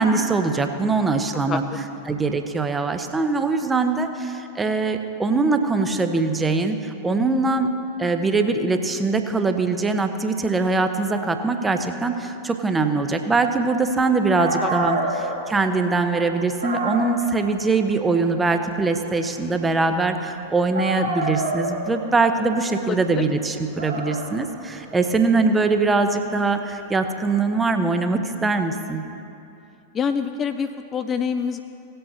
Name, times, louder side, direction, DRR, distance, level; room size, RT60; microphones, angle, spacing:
voice 1, 0.0-1.6 2.1-7.7 8.0-29.0, right 3 dB, 15° right, 7 dB, 0.8 m, -22 dB
Dog, 14.1-14.2 14.4-20.4 20.7-27.5, right 2 dB, 75° right, 1.8 m, -31 dB
voice 2, 22.8-23.2 29.9-31.6, left 6 dB, 25° left, 9 dB, 0.4 m, -26 dB
17.5 x 7.8 x 4.1 m, 2.7 s
figure-of-eight pair, 90°, 0 cm